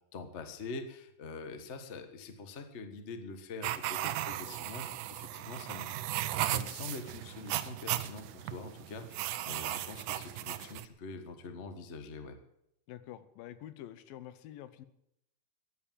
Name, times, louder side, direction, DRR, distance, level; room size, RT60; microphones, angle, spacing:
voice 1, 0.1-5.9 6.4-12.4, left 3 dB, 60° left, 7 dB, 0.7 m, -44 dB
sound 1, 3.6-10.9, right 13 dB, 75° right, 2.1 m, -36 dB
voice 2, 12.9-14.9, left 12 dB, 85° left, 14 dB, 2.7 m, -47 dB
15.5 x 10.5 x 7.5 m, 0.80 s
omnidirectional pair, 4.0 m